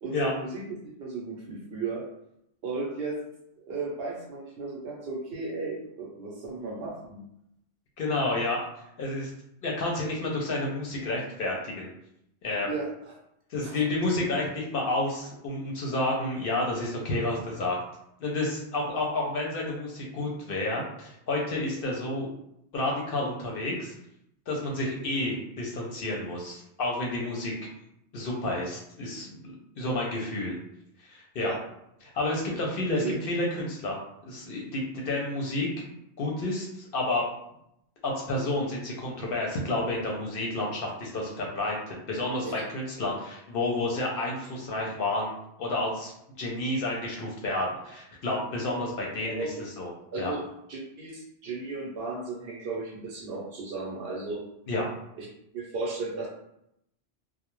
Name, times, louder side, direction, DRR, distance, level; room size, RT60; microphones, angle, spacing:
voice 1, 0.0-2.0 2.6-3.2 3.7-7.2 12.6-13.1 13.6-13.8 31.4-31.6 32.9-33.2 42.4-42.7 49.2-49.6 50.1-50.4 50.7-54.4 55.2-55.3 55.5-56.3, right 3 dB, 65° right, -2 dB, 0.8 m, -35 dB
voice 2, 8.0-8.6 9.0-9.3 9.6-11.9 12.4-12.7 13.5-17.8 18.2-22.3 22.7-23.9 24.5-27.5 28.1-30.6 31.0-31.5 32.1-34.0 34.3-35.7 36.2-37.2 38.0-45.3 45.6-46.1 46.4-50.3 54.7-54.8, left 2 dB, 60° left, -2 dB, 0.7 m, -30 dB
2.2 x 2.0 x 2.9 m, 0.78 s
omnidirectional pair, 1.1 m